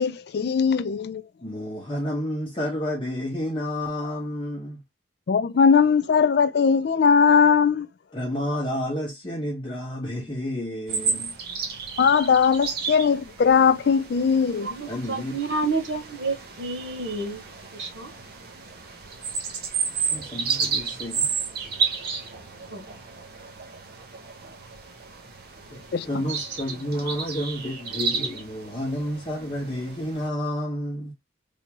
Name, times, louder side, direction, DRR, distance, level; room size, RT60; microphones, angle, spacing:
voice 1, 0.0-1.2 5.3-7.9 12.0-14.7 25.9-26.2, left 6 dB, 55° left, 0.3 m, -20 dB
voice 2, 1.4-4.8 8.1-11.3 14.9-15.4 19.9-21.3 25.7-25.8 26.1-31.1, equal, 25° left, 1.0 m, -30 dB
sound 1, 10.9-30.3, right 5 dB, 50° right, 0.9 m, -32 dB
voice 3, 14.6-17.4 17.8-18.1 22.1-22.2 22.7-22.8 26.3-26.5, right 3 dB, 80° right, 1.9 m, -29 dB
3.5 x 2.7 x 2.9 m
head